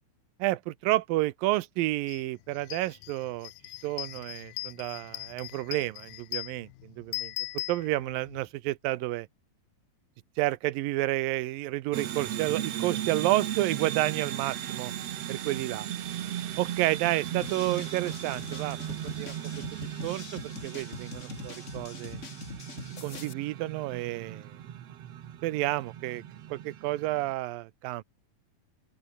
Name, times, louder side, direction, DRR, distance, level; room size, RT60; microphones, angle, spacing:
voice 1, 0.4-3.5 3.8-7.3 7.7-9.3 10.4-14.9 15.3-15.9 16.6-18.8 19.0-19.4 19.8-22.2 23.0-24.5 25.4-26.2 26.5-28.0, right 17 dB, 75° right, 2.5 m, -30 dB
sound 1, 2.1-2.2 2.6-8.4, left 20 dB, 80° left, 2.3 m, -39 dB
sound 2, 11.9-27.3, right 11 dB, 60° right, 2.0 m, -37 dB
sound 3, 17.4-23.3, left 5 dB, 45° left, 0.9 m, -43 dB
open air
omnidirectional pair, 4.2 m